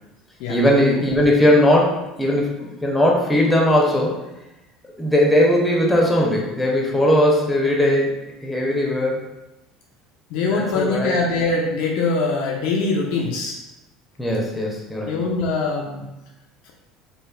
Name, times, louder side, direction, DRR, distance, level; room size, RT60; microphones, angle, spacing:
voice 1, 0.5-4.3 5.0-8.1 8.4-9.2 10.4-11.2 14.2-15.2, left 1 dB, 10° left, -2 dB, 0.7 m, -19 dB
voice 2, 10.3-13.6 15.1-16.0, left 3 dB, 55° left, -1 dB, 0.4 m, -23 dB
3.4 x 2.4 x 2.3 m, 0.96 s
figure-of-eight pair, 65°, 0 cm